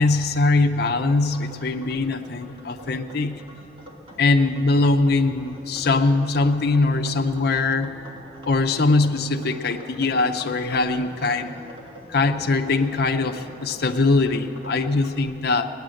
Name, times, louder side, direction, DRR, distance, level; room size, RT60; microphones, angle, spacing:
voice 1, 0.0-3.4 4.2-8.0 8.5-11.6 12.1-15.7, left 3 dB, 60° left, 5 dB, 0.6 m, -21 dB
sound 1, 1.3-15.1, equal, 30° right, 1.7 m, -44 dB
18.5 x 10.0 x 7.6 m, 2.7 s
head